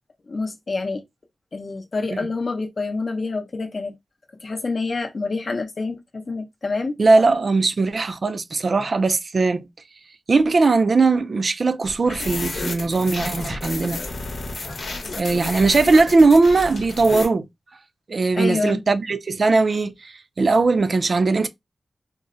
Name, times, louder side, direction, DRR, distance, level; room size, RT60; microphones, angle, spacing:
voice 1, 0.3-1.0 1.5-3.9 4.4-7.0 18.4-18.8, left 3 dB, 45° left, 0.6 m, -27 dB
voice 2, 7.0-9.7 10.3-14.0 15.2-17.5 18.1-21.5, right 3 dB, 50° right, 0.3 m, -19 dB
sound 1, 11.8-17.3, left 3 dB, 85° left, 0.8 m, -31 dB
3.7 x 2.0 x 2.5 m
wide cardioid pair, 135°, 0 cm